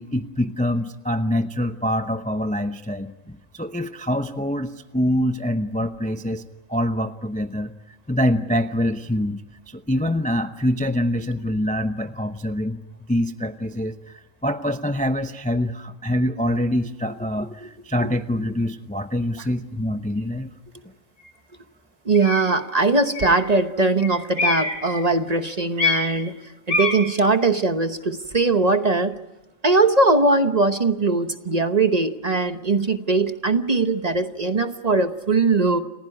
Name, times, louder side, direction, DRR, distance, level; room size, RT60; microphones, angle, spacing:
voice 1, 0.0-6.4 6.7-12.8 13.1-20.5, left 1 dB, 10° left, 9 dB, 0.6 m, -25 dB
sound 1, 20.2-20.3 21.2-21.3 22.1-22.5 23.1-23.5 24.0-25.2 25.8-26.3 26.7-27.2, left 4 dB, 50° right, 3.7 m, -25 dB
voice 2, 22.0-26.4 26.7-29.2 29.6-35.8, right 3 dB, 35° right, 9 dB, 1.0 m, -20 dB
30.0 x 15.5 x 9.8 m, 1.0 s
omnidirectional pair, 1.4 m